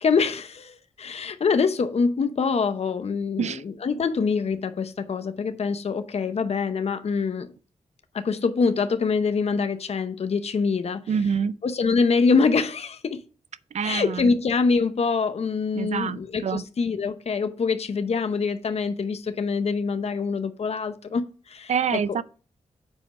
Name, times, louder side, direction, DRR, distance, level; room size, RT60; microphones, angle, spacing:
voice 1, 0.0-7.5 8.1-11.0 11.6-13.2 13.8-22.0, left 5 dB, 55° left, 0.8 m, -25 dB
voice 2, 11.1-11.5 13.7-14.3 15.8-16.6 21.7-22.2, right 7 dB, 65° right, 0.5 m, -26 dB
7.6 x 4.6 x 5.3 m
cardioid pair, 80°, 12 cm